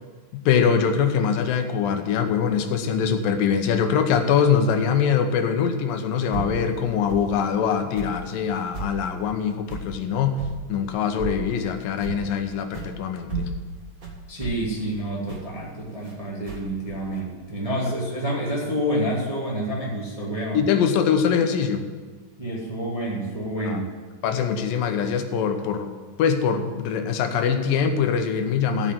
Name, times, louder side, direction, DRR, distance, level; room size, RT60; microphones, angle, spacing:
voice 1, 0.3-10.4 10.7-13.5 20.5-21.8 23.7-23.8 24.2-25.9 26.2-28.9, left 7 dB, 85° left, 6 dB, 2.7 m, -23 dB
sound 1, 6.3-6.6 7.1-7.3 7.9-8.2 8.7-9.0 9.7-9.9 10.4-10.6 11.2-11.5 12.0-12.3 12.7-12.9 13.3-16.1 16.4-17.2, right 3 dB, 40° right, 1.3 m, -33 dB
voice 2, 14.3-20.6 22.4-23.9, right 1 dB, 15° right, -4 dB, 1.3 m, -28 dB
14.5 x 5.6 x 7.4 m, 1.4 s
omnidirectional pair, 3.9 m